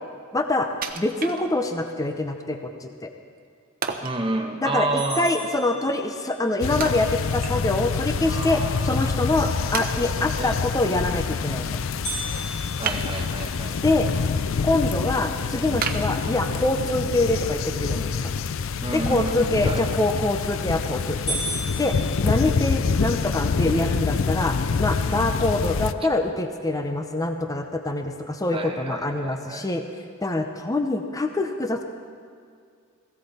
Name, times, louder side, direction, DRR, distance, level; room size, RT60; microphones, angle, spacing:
voice 1, 0.3-0.7 1.0-3.1 4.6-11.8 13.8-14.1 14.6-18.3 18.9-21.4 21.8-22.0 22.2-29.8 30.2-31.8, left 2 dB, 15° left, 5 dB, 0.6 m, -25 dB
Wood, 0.8-1.9 2.4-2.5 3.8-4.2 6.8-7.9 8.3-8.4 9.0-9.1 9.7-10.4 12.8-13.6 14.0-14.5 14.9-15.0 15.8-16.8 17.3-17.4, right 6 dB, 45° right, 0.9 m, -32 dB
voice 2, 4.0-5.3 8.2-10.6 12.8-14.0 18.8-19.9 28.5-29.7, right 2 dB, 25° right, 3 dB, 1.2 m, -31 dB
sound 1, 5.0-6.5 12.0-14.2 14.7-14.8 15.3-15.4 16.1-16.4 20.0-20.4 20.8-20.9 21.3-23.0, right 1 dB, 50° left, 4.1 m, -35 dB
sound 2, 6.6-25.9, left 5 dB, 65° left, 0.4 m, -26 dB
17.5 x 15.5 x 4.2 m, 2.2 s
head